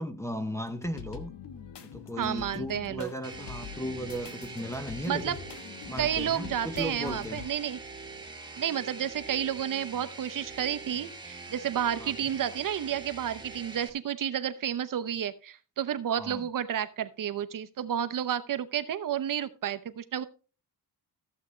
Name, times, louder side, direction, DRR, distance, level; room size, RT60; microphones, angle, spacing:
voice 1, 0.0-1.3 1.8-5.4 5.8-7.4 12.0-12.1 16.1-16.4, equal, 5° left, 0.6 m, -36 dB
sound 1, 0.6-7.5, left 8 dB, 70° left, 1.3 m, -44 dB
voice 2, 2.2-3.1 5.1-5.4 6.0-7.8 8.6-20.2, right 9 dB, 50° right, 0.8 m, -31 dB
sound 2, 3.2-13.9, right 3 dB, 10° right, 1.4 m, -44 dB
14.5 x 8.0 x 3.2 m
wide cardioid pair, 175°, 42 cm